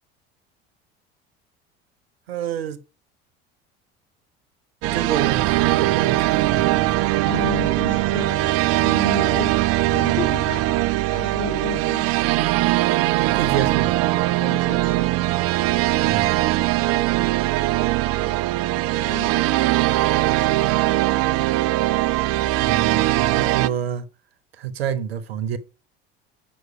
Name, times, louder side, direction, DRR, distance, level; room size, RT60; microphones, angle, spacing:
voice 1, 2.3-2.8 4.9-7.0 13.2-14.0 16.0-16.5 22.6-24.1 24.6-25.6, right 9 dB, 80° right, 0.9 m, -28 dB
sound 1, 4.8-23.7, right 17 dB, 50° right, 0.5 m, -21 dB
voice 2, 7.2-8.5 8.8-12.8 14.4-15.2 19.0-21.0, left 7 dB, 40° left, 3.1 m, -34 dB
8.0 x 6.0 x 4.9 m
hypercardioid pair, 70°, 30 cm